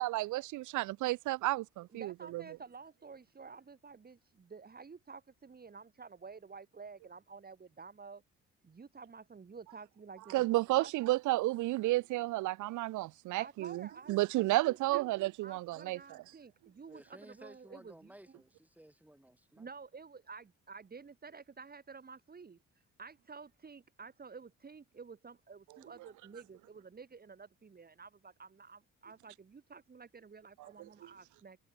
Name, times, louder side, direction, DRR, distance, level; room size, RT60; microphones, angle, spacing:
voice 1, 0.0-2.4 10.3-16.0, right 18 dB, 75° right, 0.5 m, -32 dB
voice 2, 1.9-8.2 8.6-10.9 13.4-15.0 15.4-18.1 19.6-22.6 23.0-31.6, right 5 dB, 30° right, 1.8 m, -51 dB
voice 3, 16.8-19.7, right 1 dB, 5° right, 4.2 m, -56 dB
cardioid pair, 90°, 30 cm